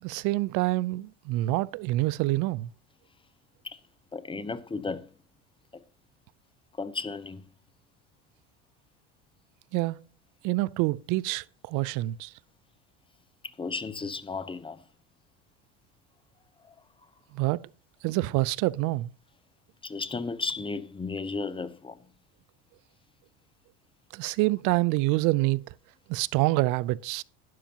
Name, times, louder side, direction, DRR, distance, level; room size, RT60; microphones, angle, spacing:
voice 1, 0.0-2.7 9.7-10.0 10.4-12.3 17.3-17.7 18.0-19.1 24.1-25.6 26.1-27.2, right 19 dB, 65° right, 0.5 m, -26 dB
voice 2, 4.1-5.1 6.8-7.4 13.4-14.8 16.7-16.8 19.8-22.0, left 4 dB, 15° left, 0.9 m, -34 dB
12.0 x 10.0 x 2.9 m
supercardioid pair, 95°, 34 cm